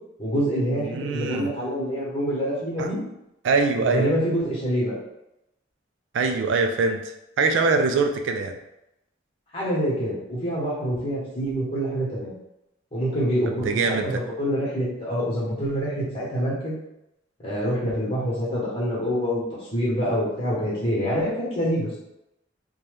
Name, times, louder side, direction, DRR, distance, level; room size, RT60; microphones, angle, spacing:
voice 1, 0.2-3.0 3.8-5.0 9.5-12.4 12.9-16.7 17.4-19.4 19.7-22.0, equal, 30° left, -6 dB, 1.0 m, -26 dB
voice 2, 0.8-1.5 2.8-2.9 3.4-4.1 6.1-7.0 7.4-8.5 13.6-14.2, right 4 dB, 70° right, 5 dB, 0.3 m, -23 dB
2.7 x 2.2 x 3.2 m, 0.87 s
head